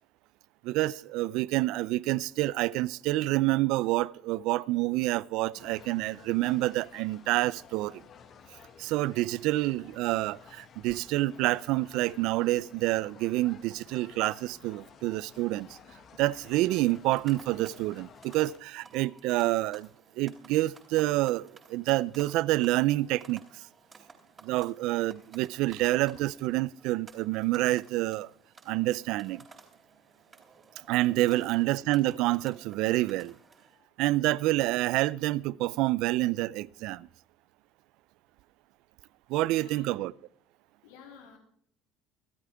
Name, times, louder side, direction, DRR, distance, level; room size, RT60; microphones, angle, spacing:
voice 1, 0.6-8.0 8.8-15.8 16.2-19.9 20.2-23.4 24.4-28.3 28.7-29.4 30.9-33.3 34.0-37.1 39.3-40.1, right 18 dB, 70° right, 0.4 m, -28 dB
sound 1, 5.5-18.6, left 7 dB, 45° left, 1.5 m, -54 dB
sound 2, 16.5-33.8, right 4 dB, 30° right, 3.7 m, -56 dB
voice 2, 31.2-31.5 33.7-33.9 39.5-39.9 40.8-41.4, left 7 dB, 85° left, 3.4 m, -52 dB
25.0 x 8.5 x 3.5 m
supercardioid pair, 100°, 0 cm